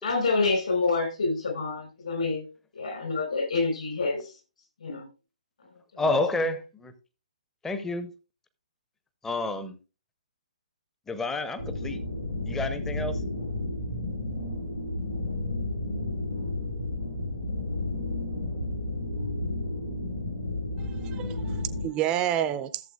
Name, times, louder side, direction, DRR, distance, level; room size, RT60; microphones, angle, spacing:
voice 1, 0.0-2.4 2.8-4.2 4.8-5.1 5.9-6.1, left 3 dB, 60° left, 5.1 m, -27 dB
voice 2, 6.0-6.9 7.6-8.1 9.2-9.8 11.1-12.0 12.5-13.2, left 2 dB, 10° left, 0.9 m, -29 dB
sound 1, 11.6-21.8, left 2 dB, 90° left, 3.0 m, -32 dB
voice 3, 20.8-22.8, right 11 dB, 20° right, 0.7 m, -29 dB
14.5 x 7.5 x 2.4 m
figure-of-eight pair, 125°, 4 cm